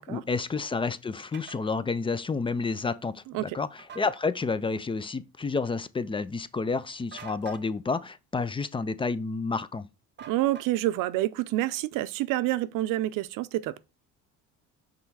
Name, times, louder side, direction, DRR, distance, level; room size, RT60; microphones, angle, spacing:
voice 1, 0.0-9.9, left 4 dB, 15° left, 0.4 m, -30 dB
sound 1, 1.3-1.6 3.8-4.2 7.1-7.7 10.2-11.0, right 7 dB, 30° right, 0.9 m, -46 dB
voice 2, 10.3-13.8, right 15 dB, 70° right, 0.6 m, -28 dB
5.7 x 3.5 x 4.7 m
supercardioid pair, 100°, 34 cm